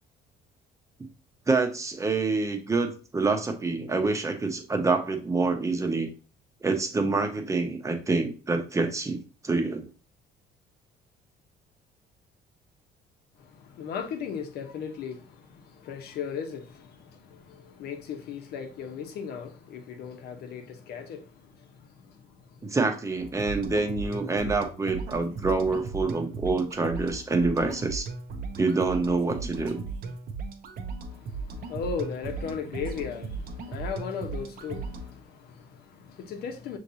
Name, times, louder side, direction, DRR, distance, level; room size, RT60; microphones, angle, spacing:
voice 1, 1.5-6.1 6.6-9.9 22.6-28.1 28.6-29.8, right 3 dB, 20° right, 0.8 m, -26 dB
voice 2, 13.4-22.8 31.1-36.8, left 6 dB, 70° left, 0.9 m, -37 dB
sound 1, 23.2-35.2, right 4 dB, 60° right, 0.8 m, -37 dB
5.7 x 3.1 x 2.7 m
cardioid pair, 110°, 17 cm